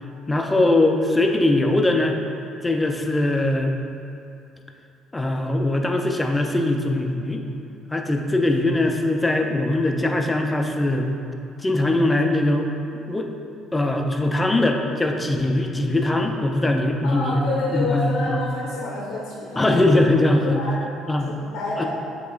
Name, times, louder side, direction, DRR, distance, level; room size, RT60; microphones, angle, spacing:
voice 1, 0.3-2.2 2.6-3.7 5.1-7.4 7.9-11.1 11.6-12.7 13.1-13.3 13.7-17.5 17.7-18.4 19.6-20.6 21.1-21.3 21.8-21.9, left 2 dB, 15° left, 3 dB, 0.5 m, -21 dB
voice 2, 17.0-19.8 20.4-20.8 21.2-21.9, left 2 dB, 80° left, -6 dB, 0.7 m, -29 dB
7.7 x 2.9 x 2.3 m, 2.6 s
supercardioid pair, 75°, 0 cm